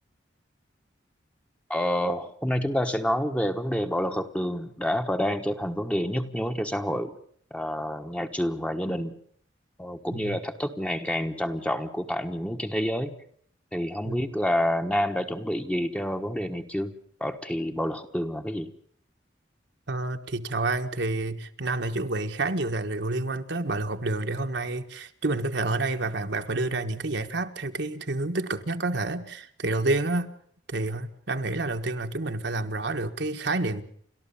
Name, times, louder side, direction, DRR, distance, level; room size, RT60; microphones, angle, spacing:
voice 1, 1.7-7.1 7.5-9.1 9.8-13.1 13.7-16.9 17.2-18.7, equal, 5° left, 6 dB, 1.2 m, -28 dB
voice 2, 19.9-30.3 30.7-33.8, right 2 dB, 65° right, 6 dB, 1.4 m, -29 dB
30.0 x 13.5 x 7.1 m, 0.62 s
head